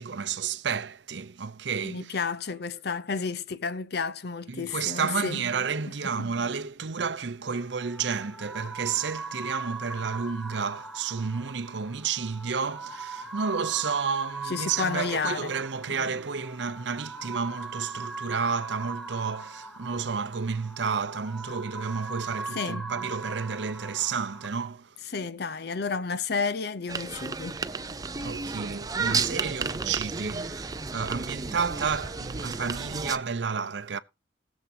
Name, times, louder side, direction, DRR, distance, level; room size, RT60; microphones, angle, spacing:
voice 1, 0.0-2.2 4.5-24.9 28.2-34.0, right 5 dB, 65° right, 0.7 m, -31 dB
voice 2, 1.8-5.4 14.4-15.5 15.9-16.1 22.5-22.8 25.1-27.6, left 5 dB, 60° left, 0.7 m, -31 dB
sound 1, 7.5-24.5, right 3 dB, ahead, 1.0 m, -40 dB
sound 2, 26.9-33.2, right 4 dB, 20° right, 0.5 m, -32 dB
20.0 x 7.2 x 2.8 m
head